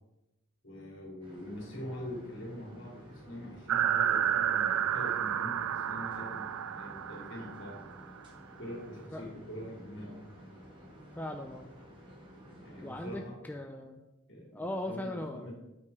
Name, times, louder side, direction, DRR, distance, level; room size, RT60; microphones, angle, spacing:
voice 1, 0.6-6.5 6.7-7.8 8.6-10.2 12.6-13.4 14.3-15.5, equal, 65° left, -3 dB, 3.1 m, -44 dB
sound 1, 1.2-13.2, equal, 25° right, 1.8 m, -52 dB
sound 2, 3.7-8.0, right 10 dB, 85° right, 0.4 m, -30 dB
voice 2, 11.2-11.7 12.8-14.0 14.5-15.5, left 1 dB, 10° left, 4 dB, 0.4 m, -39 dB
8.5 x 4.8 x 4.8 m, 0.96 s
head